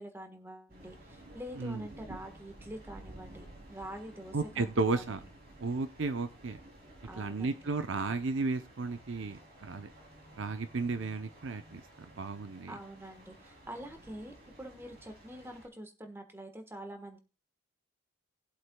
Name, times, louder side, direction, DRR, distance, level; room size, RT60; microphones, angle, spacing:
voice 1, 0.0-5.0 7.1-7.7 12.7-17.2, equal, 10° right, 6 dB, 1.3 m, -46 dB
sound 1, 0.7-15.7, right 1 dB, 50° right, 3.1 m, -53 dB
voice 2, 1.6-1.9 4.3-5.2 5.6-6.6 7.2-9.9 10.4-12.7, right 3 dB, 65° right, 10 dB, 0.7 m, -34 dB
19.0 x 7.8 x 2.3 m, 0.33 s
head